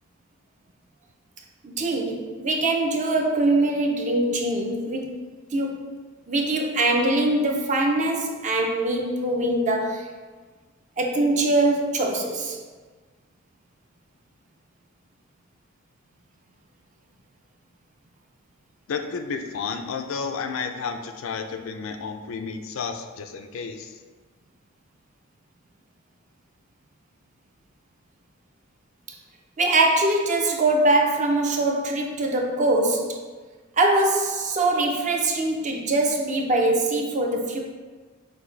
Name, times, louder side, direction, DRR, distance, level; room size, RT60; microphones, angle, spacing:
voice 1, 1.6-5.2 5.5-5.9 6.3-10.1 11.0-12.6 29.6-33.2 33.8-37.6, right 2 dB, 35° right, 2 dB, 0.6 m, -23 dB
voice 2, 18.9-24.0, left 5 dB, 75° left, 6 dB, 0.4 m, -31 dB
6.0 x 2.6 x 3.2 m, 1.4 s
head